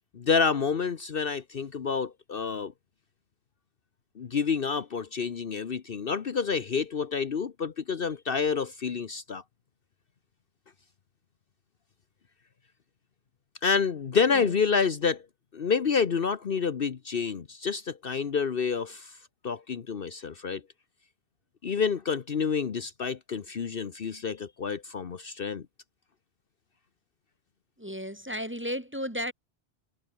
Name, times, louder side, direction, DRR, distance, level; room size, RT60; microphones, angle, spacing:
voice 1, 0.1-2.7 4.2-9.4 13.6-15.2 15.5-19.1 19.4-20.6 21.6-25.6, left 5 dB, 55° left, 1.1 m, -28 dB
voice 2, 27.8-29.3, equal, 10° right, 1.7 m, -34 dB
omnidirectional pair, 1.2 m